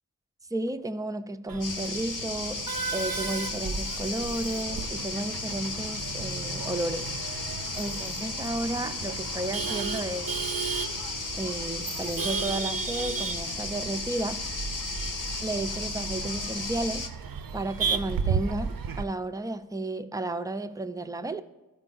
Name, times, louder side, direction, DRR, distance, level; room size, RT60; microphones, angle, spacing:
voice 1, 0.5-2.7 2.9-7.4 7.8-10.3 11.3-14.4 15.4-17.1 17.5-21.4, right 2 dB, 10° right, 0.4 m, -33 dB
Male speech man speaking / Laughter / Chatter, 1.5-19.0, right 5 dB, 75° right, 0.5 m, -34 dB
sound 1, 1.6-17.1, left 3 dB, 65° left, 0.8 m, -35 dB
12.5 x 4.5 x 3.9 m
wide cardioid pair, 45°, 35 cm